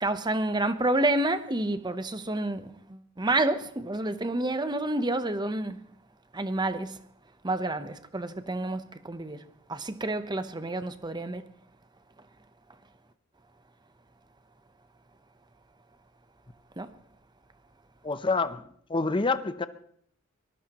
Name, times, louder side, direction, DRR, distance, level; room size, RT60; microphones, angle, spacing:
voice 1, 0.0-5.8 6.3-7.0 7.4-11.5 16.8-16.9, right 2 dB, 20° right, 0.8 m, -29 dB
voice 2, 18.0-18.6 18.9-19.7, left 3 dB, 25° left, 0.7 m, -27 dB
24.0 x 19.5 x 3.0 m
head